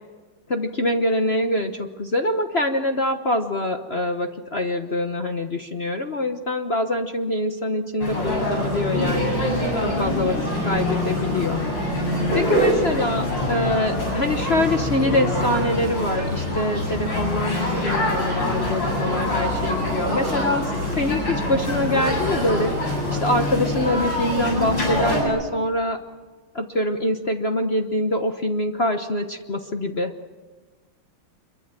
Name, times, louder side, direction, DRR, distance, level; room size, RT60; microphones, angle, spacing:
voice 1, 0.5-9.4 9.8-10.4 10.6-11.6 12.1-26.0 26.5-30.1, left 1 dB, 40° left, 5 dB, 1.1 m, -24 dB
sound 1, 8.0-25.2, left 1 dB, 60° left, 8.8 m, -24 dB
26.5 x 23.0 x 7.5 m, 1.4 s
omnidirectional pair, 2.3 m